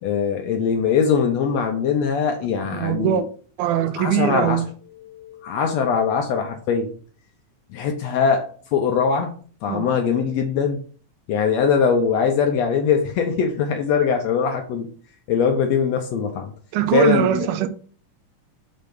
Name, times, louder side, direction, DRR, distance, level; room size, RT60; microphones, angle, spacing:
voice 1, 0.0-3.2 4.0-4.6 5.0-6.9 7.7-9.3 9.6-10.8 11.3-14.9 15.3-16.5 16.9-17.3, left 6 dB, 75° left, 1.6 m, -21 dB
voice 2, 2.7-3.2 3.6-4.7 9.7-9.9 16.7-17.7, right 11 dB, 80° right, 2.1 m, -21 dB
6.5 x 3.3 x 5.2 m
omnidirectional pair, 3.6 m